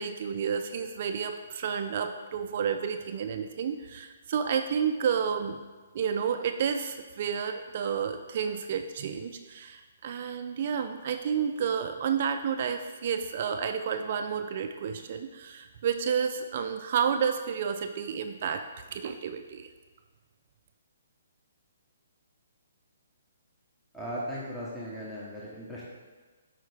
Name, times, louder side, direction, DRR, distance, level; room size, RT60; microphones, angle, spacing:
voice 1, 0.0-5.6 5.9-19.7, right 7 dB, 50° right, 6 dB, 0.4 m, -30 dB
voice 2, 23.9-25.8, equal, 5° left, -7 dB, 1.0 m, -37 dB
7.8 x 4.7 x 3.4 m, 1.3 s
hypercardioid pair, 150°, 0 cm